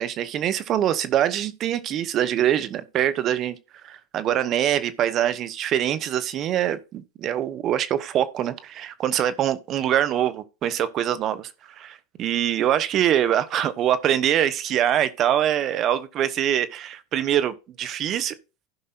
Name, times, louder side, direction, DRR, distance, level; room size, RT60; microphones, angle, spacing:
voice 1, 0.0-3.6 3.8-18.3, right 11 dB, 45° right, 0.9 m, -24 dB
16.0 x 5.4 x 2.5 m
hypercardioid pair, 95°, 0 cm